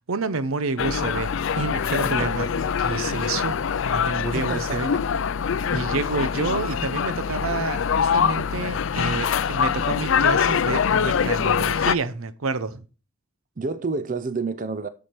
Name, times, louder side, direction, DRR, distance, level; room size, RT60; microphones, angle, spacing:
voice 1, 0.1-2.5 2.8-3.6 3.8-4.9 5.7-12.8, right 4 dB, 80° right, 0.7 m, -29 dB
sound 1, 0.8-11.9, left 7 dB, 65° left, 0.4 m, -24 dB
voice 2, 1.8-2.7 4.3-5.0 13.6-14.9, right 3 dB, 35° right, 0.5 m, -30 dB
7.7 x 7.1 x 4.4 m
head